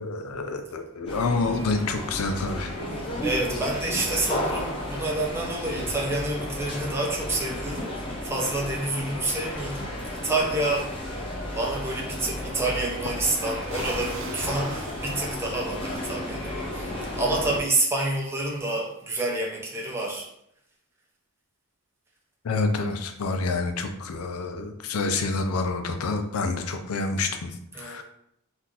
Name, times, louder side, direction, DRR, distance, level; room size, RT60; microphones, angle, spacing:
voice 1, 0.0-2.7 22.4-28.0, left 3 dB, 85° left, 7 dB, 0.5 m, -28 dB
sound 1, 1.1-17.6, left 1 dB, 25° left, 0.7 m, -33 dB
voice 2, 3.2-10.9 11.6-20.3 27.7-28.0, right 2 dB, 10° right, -3 dB, 0.6 m, -28 dB
sound 2, 13.7-15.7, right 5 dB, 65° right, 0.4 m, -42 dB
3.8 x 2.5 x 2.9 m, 0.75 s
head